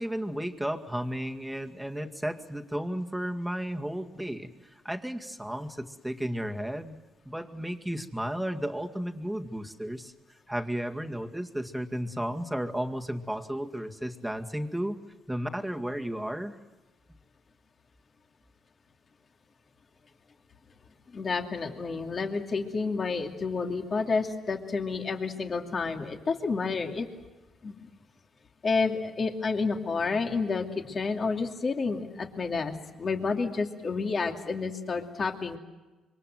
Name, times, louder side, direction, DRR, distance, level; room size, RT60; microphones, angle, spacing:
voice 1, 0.0-7.0 7.3-10.1 10.5-15.0 15.3-16.5, equal, 5° right, 4 dB, 2.1 m, -33 dB
voice 2, 21.1-27.1 27.6-27.9 28.6-35.6, left 4 dB, 40° left, 4 dB, 2.7 m, -30 dB
27.0 x 24.0 x 7.8 m, 1.1 s
cardioid pair, 90°, 0 cm